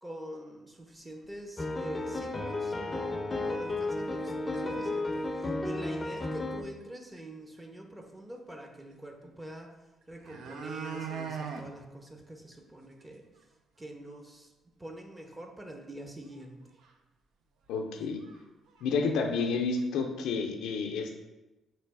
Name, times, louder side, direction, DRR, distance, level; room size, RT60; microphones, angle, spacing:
voice 1, 0.0-9.7 10.1-13.2 13.8-14.5 14.8-16.6, right 1 dB, 15° right, 3 dB, 0.7 m, -45 dB
sound 1, 1.2-1.3 1.8-1.9 2.3-2.4 3.3-3.4 4.0-4.3 4.5-4.6 5.0-5.4 6.8-6.9 7.2-7.3 9.6-9.7 10.0-11.7 12.1-12.2 12.5-12.6 13.0-13.1 13.4-13.5 16.3-16.4 16.8-16.9 17.7-17.8 18.2-18.4 18.7-19.5 19.8-19.9, right 6 dB, 75° right, 0.4 m, -41 dB
sound 2, 1.6-6.6, left 2 dB, 25° left, 0.5 m, -33 dB
voice 2, 17.7-18.2 18.8-21.2, left 4 dB, 85° left, 4 dB, 0.5 m, -30 dB
3.2 x 2.9 x 4.6 m, 1.0 s
cardioid pair, 90°, 0 cm